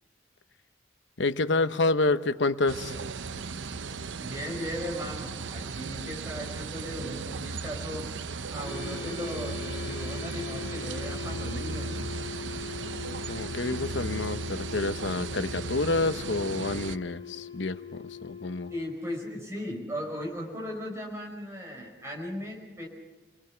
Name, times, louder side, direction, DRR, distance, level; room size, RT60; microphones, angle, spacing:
voice 1, 1.2-3.0 13.0-18.7, left 3 dB, 80° left, 11 dB, 0.9 m, -28 dB
sound 1, 2.7-17.0, right 4 dB, 85° right, 0.6 m, -36 dB
voice 2, 4.2-8.1 8.5-12.1 18.7-22.9, equal, 15° right, -1 dB, 4.8 m, -37 dB
sound 2, 8.6-18.9, left 6 dB, 25° left, 2.3 m, -41 dB
29.0 x 20.0 x 5.9 m, 1.3 s
head